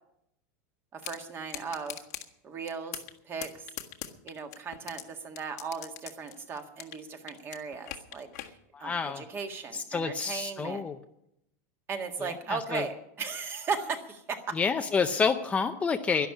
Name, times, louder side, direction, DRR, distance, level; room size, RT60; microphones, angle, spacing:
voice 1, 0.9-2.0 2.4-3.7 4.2-10.8 11.9-14.6, right 5 dB, 25° right, 6 dB, 1.8 m, -37 dB
sound 1, 1.0-1.2 1.5-2.3 2.7-3.1 3.4-5.0 5.3-7.0 7.3-8.5, left 13 dB, 85° left, 1.6 m, -40 dB
voice 2, 8.7-9.2 9.7-11.0 12.2-12.8 14.6-16.3, left 5 dB, 15° left, 6 dB, 0.6 m, -29 dB
11.5 x 11.5 x 8.3 m, 0.78 s
supercardioid pair, 150°, 9 cm